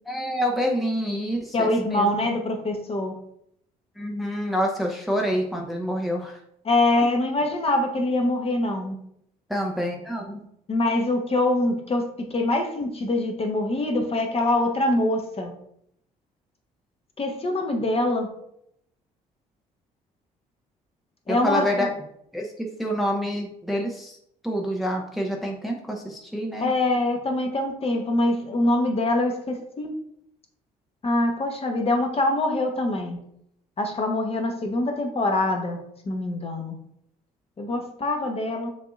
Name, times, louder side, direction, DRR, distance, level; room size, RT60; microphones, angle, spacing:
voice 1, 0.1-2.1 4.0-6.4 7.0-7.1 9.5-10.4 21.3-21.9 22.3-24.2 24.4-26.7, equal, ahead, 0 dB, 0.7 m, -27 dB
voice 2, 1.5-3.2 6.6-9.0 10.7-15.5 17.2-18.3 21.3-21.7 26.6-29.9 31.0-33.2 33.8-35.8 36.0-36.7 37.6-38.7, left 2 dB, 30° left, 3 dB, 0.9 m, -24 dB
6.1 x 2.8 x 2.5 m, 0.73 s
figure-of-eight pair, 50°, 20 cm